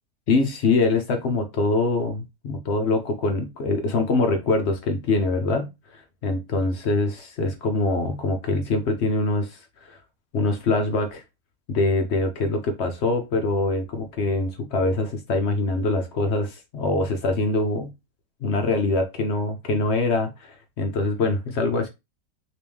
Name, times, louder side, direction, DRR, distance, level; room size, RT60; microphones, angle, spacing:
voice 1, 0.3-10.0 10.3-11.2 11.7-17.9 18.4-21.9, left 3 dB, 60° left, 0.8 m, -24 dB
3.0 x 3.0 x 3.4 m
omnidirectional pair, 1.6 m